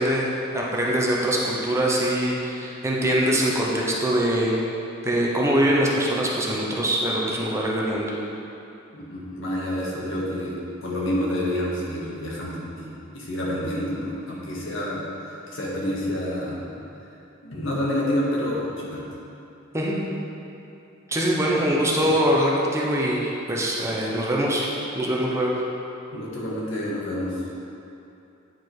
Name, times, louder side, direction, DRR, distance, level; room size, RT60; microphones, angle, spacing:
voice 1, 0.0-4.6 5.0-8.1 19.7-19.9 21.1-25.5, equal, 15° right, -4 dB, 0.8 m, -23 dB
voice 2, 8.9-10.6 10.8-15.0 15.5-16.6 17.4-19.0 21.5-21.7 22.0-22.1 26.1-27.3, left 1 dB, 70° left, -5 dB, 1.6 m, -28 dB
9.2 x 4.9 x 4.7 m, 2.8 s
head